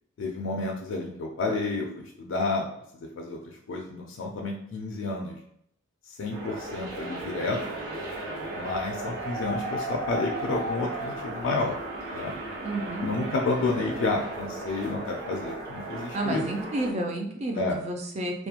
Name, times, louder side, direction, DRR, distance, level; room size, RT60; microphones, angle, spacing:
voice 1, 0.2-2.6 2.9-5.4 6.1-7.6 8.6-11.8 12.1-12.3 13.0-16.4 17.6-17.8, left 3 dB, 75° left, 0 dB, 0.3 m, -30 dB
sound 1, 6.3-16.9, right 2 dB, 50° right, 1.0 m, -35 dB
voice 2, 12.6-13.1 16.1-18.5, right 1 dB, 35° right, 2 dB, 0.4 m, -31 dB
2.4 x 2.1 x 2.8 m, 0.72 s
head